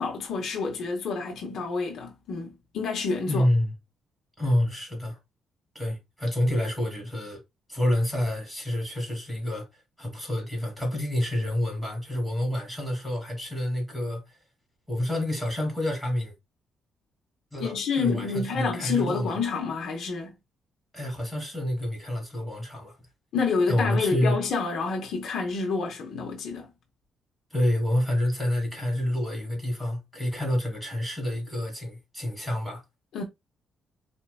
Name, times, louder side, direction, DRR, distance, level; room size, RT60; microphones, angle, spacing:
voice 1, 0.0-3.5 17.6-20.3 23.3-26.7 33.1-33.2, left 4 dB, 70° left, 1.0 m, -28 dB
voice 2, 3.3-3.7 4.4-5.2 5.7-7.4 7.7-14.4 14.9-16.3 17.5-19.4 20.9-23.0 23.7-24.4 27.5-32.8, left 1 dB, ahead, 2.3 m, -28 dB
4.3 x 2.8 x 2.3 m
cardioid pair, 90°, 0 cm